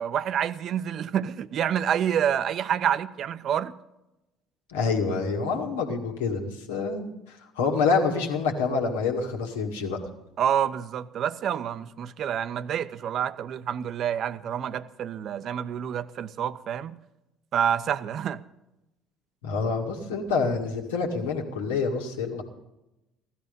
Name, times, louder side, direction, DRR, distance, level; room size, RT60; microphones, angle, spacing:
voice 1, 0.0-3.7 10.4-17.0 17.5-18.4, right 9 dB, 55° right, 0.7 m, -28 dB
voice 2, 4.7-10.0 19.4-22.4, left 4 dB, 80° left, 2.0 m, -27 dB
16.5 x 13.0 x 5.2 m
hypercardioid pair, 60°, 0 cm